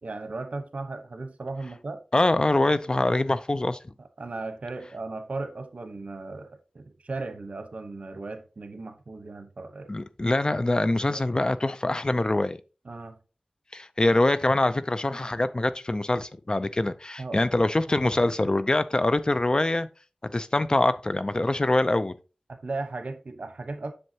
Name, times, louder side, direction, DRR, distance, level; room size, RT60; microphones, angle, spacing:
voice 1, 0.0-2.0 4.2-9.9 11.1-11.2 12.8-13.2 17.2-17.4 17.9-18.1 22.5-23.9, right 3 dB, 80° right, 1.0 m, -36 dB
voice 2, 2.1-3.8 9.9-12.6 13.7-19.9 20.3-22.2, left 2 dB, 35° left, 0.5 m, -24 dB
7.8 x 6.5 x 2.8 m
wide cardioid pair, 55°, 2 cm